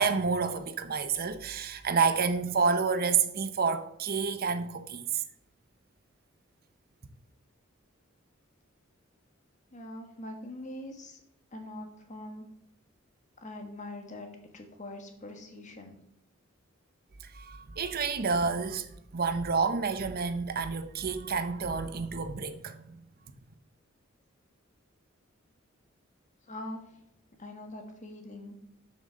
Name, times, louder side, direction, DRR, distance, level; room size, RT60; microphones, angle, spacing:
voice 1, 0.0-5.2 17.2-23.0, right 5 dB, 50° right, 0.7 m, -29 dB
voice 2, 9.7-11.2 11.5-12.5 13.4-14.3 14.5-16.0 26.5-26.8 27.4-28.6, left 1 dB, 40° left, 1.5 m, -43 dB
7.3 x 6.2 x 6.3 m
head